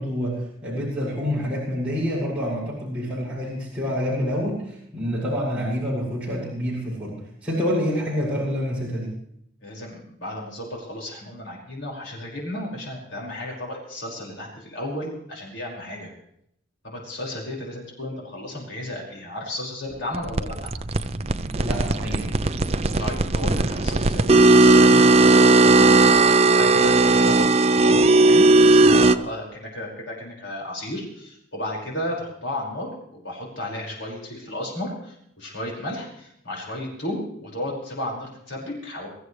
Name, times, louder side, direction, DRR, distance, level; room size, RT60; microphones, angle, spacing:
voice 1, 0.0-9.1 21.6-22.3, equal, 5° right, -9 dB, 6.8 m, -27 dB
voice 2, 9.6-16.1 16.8-20.7 23.0-25.9 26.6-32.9 33.2-39.1, left 1 dB, 65° left, -3 dB, 5.5 m, -33 dB
sound 1, 20.1-29.2, right 2 dB, 30° right, 0.5 m, -17 dB
24.0 x 14.5 x 3.3 m, 0.72 s
head